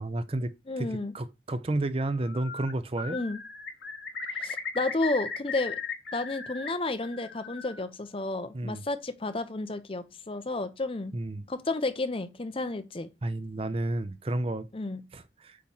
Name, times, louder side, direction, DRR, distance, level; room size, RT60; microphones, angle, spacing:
voice 1, 0.0-3.2 8.5-8.8 11.1-11.5 13.2-14.7 15.1-15.6, right 2 dB, 30° right, 0.6 m, -31 dB
voice 2, 0.7-1.1 3.1-3.4 4.3-5.8 6.1-11.1 11.5-13.1 14.7-15.0, left 2 dB, 30° left, 0.6 m, -32 dB
Bird, 2.1-2.7 3.0-6.7 7.0-7.8, left 5 dB, 70° left, 1.2 m, -37 dB
8.5 x 3.2 x 5.5 m
head